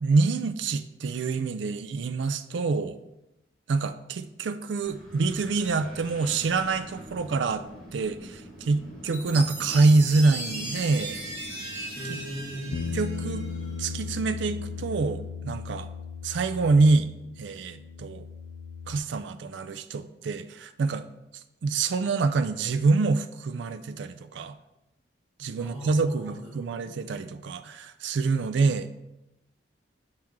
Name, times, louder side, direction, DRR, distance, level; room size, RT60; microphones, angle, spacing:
voice 1, 0.0-3.0 3.7-7.7 7.9-11.2 12.1-12.2 12.9-13.5 13.8-15.9 16.2-17.1 17.4-18.3 18.9-21.1 21.6-24.5 25.4-28.9, right 3 dB, 75° right, 11 dB, 0.4 m, -26 dB
Wind, 4.8-15.1, equal, 5° left, 1.6 m, -46 dB
Chime, 9.1-13.7, right 1 dB, 35° right, 2.5 m, -37 dB
voice 2, 12.0-13.0 25.6-27.0, equal, 10° right, -6 dB, 2.0 m, -39 dB
Bass guitar, 12.7-19.0, left 5 dB, 75° left, 0.4 m, -37 dB
7.5 x 4.4 x 3.6 m, 0.91 s
head